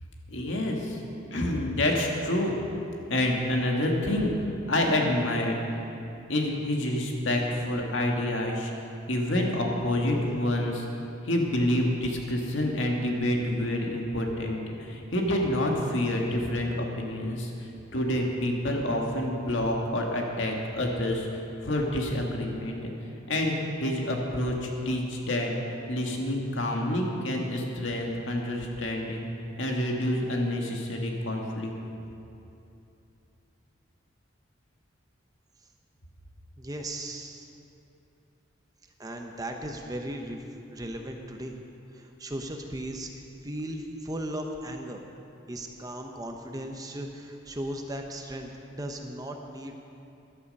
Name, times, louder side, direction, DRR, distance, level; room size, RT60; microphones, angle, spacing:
voice 1, 0.3-1.0 1.3-2.5 3.1-5.6 6.3-8.7 9.1-10.9 11.2-22.9 23.3-25.5 25.9-29.3 29.6-31.7, left 1 dB, 75° left, 0 dB, 1.8 m, -28 dB
voice 2, 36.6-37.5 39.0-40.4 40.7-41.5 41.9-45.0 45.5-49.7, right 1 dB, 20° right, 3 dB, 0.8 m, -37 dB
14.0 x 11.5 x 5.4 m, 2.8 s
head